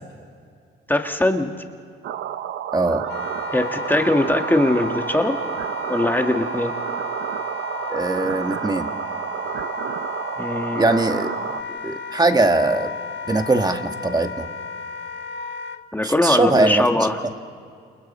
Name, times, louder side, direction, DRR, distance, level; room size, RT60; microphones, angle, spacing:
voice 1, 0.9-1.5 3.5-5.4 5.9-6.7 10.4-11.0 15.9-17.2, left 1 dB, 10° left, 5 dB, 1.5 m, -21 dB
sound 1, 2.0-11.6, right 10 dB, 75° right, 0.9 m, -30 dB
voice 2, 2.7-3.0 7.9-8.9 10.8-11.3 11.8-12.9 13.3-14.5 16.0-16.8, right 2 dB, 20° right, 7 dB, 1.5 m, -20 dB
Wind instrument woodwind instrument, 3.0-15.8, left 4 dB, 65° left, 1.3 m, -34 dB
29.5 x 28.0 x 4.3 m, 2.3 s
cardioid pair, 90°, 20 cm